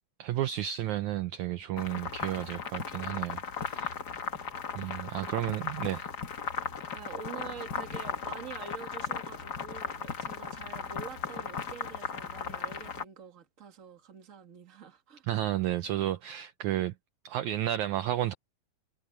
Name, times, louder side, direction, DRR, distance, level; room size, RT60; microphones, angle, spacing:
voice 1, 0.2-3.9 4.8-6.1 15.3-16.9 17.3-18.3, right 13 dB, 75° right, 1.8 m, -32 dB
sound 1, 1.8-13.0, left 6 dB, 50° left, 1.2 m, -37 dB
voice 2, 5.2-5.6 6.9-15.3, right 6 dB, 30° right, 1.8 m, -46 dB
omnidirectional pair, 4.0 m